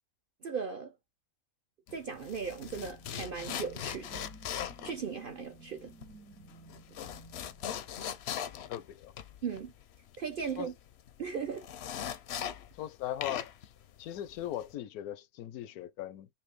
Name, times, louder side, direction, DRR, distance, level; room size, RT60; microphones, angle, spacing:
voice 1, 0.4-0.9 1.9-4.2 4.8-5.9 9.4-9.7 10.2-10.7 11.2-11.7, right 6 dB, 60° right, 0.6 m, -37 dB
sound 1, 1.9-12.9 13.2-14.7, left 9 dB, 60° left, 0.7 m, -40 dB
sound 2, 2.3-8.6, right 4 dB, 75° right, 1.8 m, -56 dB
voice 2, 8.7-9.1 10.6-10.7 12.7-13.7 14.0-16.3, left 12 dB, 80° left, 1.1 m, -39 dB
5.6 x 2.7 x 3.1 m
omnidirectional pair, 1.5 m